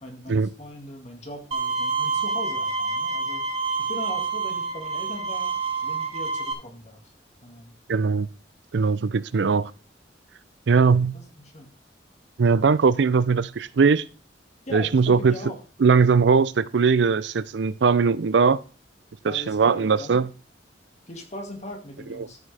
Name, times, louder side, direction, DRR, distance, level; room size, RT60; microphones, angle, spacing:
voice 1, 0.0-3.4 3.8-7.0 7.4-7.7 9.4-9.6 10.9-11.7 14.7-15.6 19.3-20.2 21.1-22.4, left 1 dB, 40° left, 2.0 m, -40 dB
Bowed string instrument, 1.5-6.5, right 4 dB, 35° right, 2.3 m, -27 dB
voice 2, 7.9-8.3 8.7-9.7 10.7-11.2 12.4-14.1 14.7-15.4 15.8-18.6 19.2-20.3, right 5 dB, 75° right, 0.5 m, -20 dB
13.0 x 6.3 x 3.4 m
head